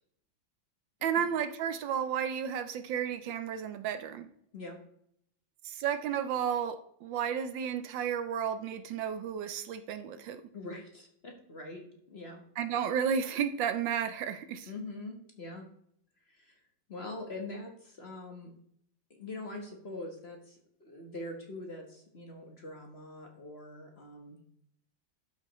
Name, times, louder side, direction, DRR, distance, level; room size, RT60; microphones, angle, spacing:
voice 1, 1.0-4.3 5.6-10.4 12.6-14.7, right 8 dB, 75° right, 10 dB, 1.3 m, -32 dB
voice 2, 10.5-12.4 14.7-15.7 16.3-16.6 16.9-18.5 19.1-24.4, left 2 dB, 35° left, 2 dB, 1.3 m, -43 dB
12.5 x 5.6 x 3.1 m, 0.69 s
omnidirectional pair, 2.2 m